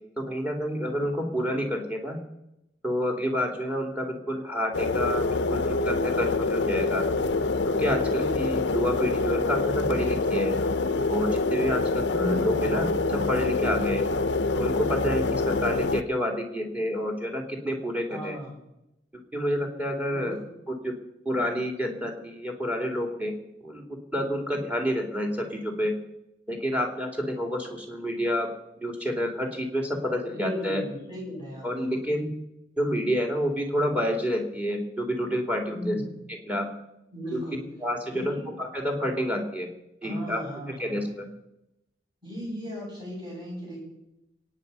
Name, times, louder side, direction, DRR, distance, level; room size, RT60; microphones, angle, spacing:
voice 1, 0.2-2.2 2.8-7.0 7.8-10.5 11.1-14.1 14.6-18.4 19.3-20.3 20.7-20.9 21.2-23.3 23.6-23.8 24.1-25.9 26.5-28.5 28.8-30.8 31.6-32.3 32.8-36.0 36.3-36.7 37.3-37.4 37.8-39.7 40.0-40.4 40.8-41.3, equal, 10° right, 2 dB, 2.5 m, -29 dB
sound 1, 4.7-16.0, left 3 dB, 75° left, 0.7 m, -26 dB
voice 2, 8.1-8.4 12.1-12.6 18.1-18.6 20.1-20.5 30.3-32.1 35.7-36.0 37.1-37.6 38.1-38.5 40.0-41.0 42.2-43.8, equal, 25° right, -4 dB, 7.8 m, -36 dB
24.0 x 9.4 x 5.4 m, 0.87 s
head